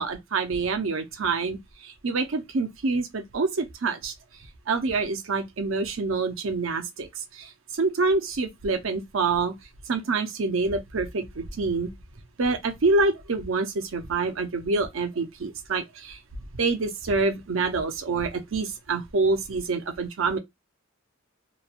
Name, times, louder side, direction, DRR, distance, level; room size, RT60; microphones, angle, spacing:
voice 1, 0.0-1.6 1.8-4.1 4.7-9.5 9.9-11.9 12.4-16.2 16.5-20.4, right 3 dB, 70° right, 0.6 m, -26 dB
3.1 x 2.2 x 2.4 m
head